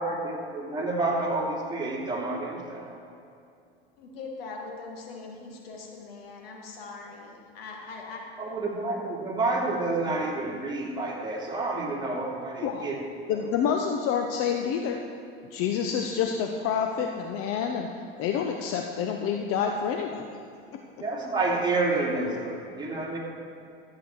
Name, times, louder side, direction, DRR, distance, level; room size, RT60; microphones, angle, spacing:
voice 1, 0.0-3.0 8.4-13.0 13.3-13.4 21.0-23.2, right 2 dB, 15° right, -3 dB, 2.7 m, -29 dB
voice 2, 4.0-8.2, left 4 dB, 75° left, 0 dB, 1.9 m, -41 dB
voice 3, 13.3-15.0 15.5-17.9 18.2-20.4 20.7-20.8, left 7 dB, 50° left, 3 dB, 0.8 m, -28 dB
13.0 x 8.3 x 4.6 m, 2.4 s
hypercardioid pair, 90°, 30 cm